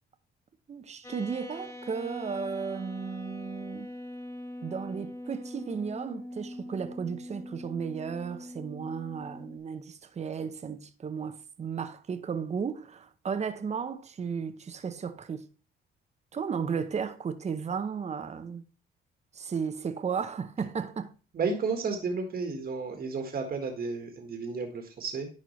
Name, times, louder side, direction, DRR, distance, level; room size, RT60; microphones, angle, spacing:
voice 1, 0.7-3.9 4.6-15.5 16.3-18.6 19.3-21.1, right 6 dB, 35° right, 0.8 m, -34 dB
sound 1, 1.0-9.6, left 1 dB, 15° left, 1.2 m, -42 dB
voice 2, 21.3-25.3, right 4 dB, 50° right, 1.6 m, -32 dB
10.5 x 4.3 x 3.1 m
cardioid pair, 90°, 20 cm